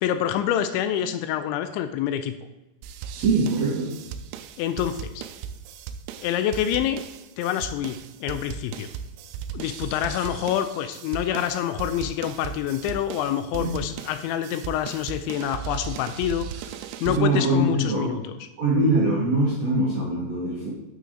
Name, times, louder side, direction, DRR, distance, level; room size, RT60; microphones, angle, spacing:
voice 1, 0.0-2.4 4.6-5.2 6.2-7.0 7.4-8.9 9.5-16.7 17.0-18.3, left 10 dB, 80° left, 10 dB, 2.8 m, -27 dB
sound 1, 2.8-17.2, right 7 dB, 85° right, 2.8 m, -37 dB
voice 2, 3.2-3.9 13.6-13.7 17.1-18.1 18.6-20.7, right 2 dB, 65° right, -6 dB, 1.7 m, -22 dB
10.0 x 6.7 x 3.8 m, 1.1 s
omnidirectional pair, 5.4 m